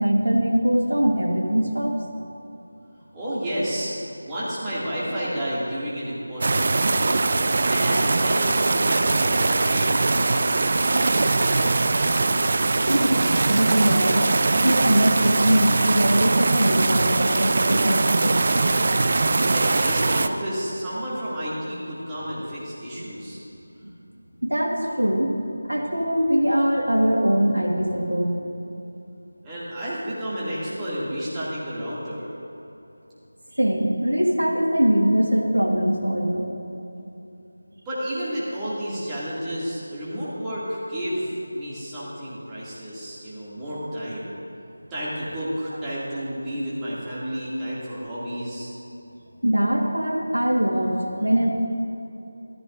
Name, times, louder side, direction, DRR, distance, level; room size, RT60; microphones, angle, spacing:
voice 1, 0.0-1.9 12.9-13.2 13.5-14.2 14.6-18.7 23.0-23.1 24.4-25.3 25.7-28.3 33.5-36.5 49.4-51.5, equal, 85° right, 0 dB, 1.7 m, -22 dB
voice 2, 3.1-3.9 4.2-7.1 7.6-11.8 19.5-23.4 29.4-32.3 37.9-44.3 44.9-48.7, equal, 10° right, -11 dB, 2.4 m, -31 dB
sound 1, 6.4-20.3, right 3 dB, 45° right, 0.4 m, -21 dB
14.5 x 14.0 x 2.6 m, 3.0 s
figure-of-eight pair, 165°, 0 cm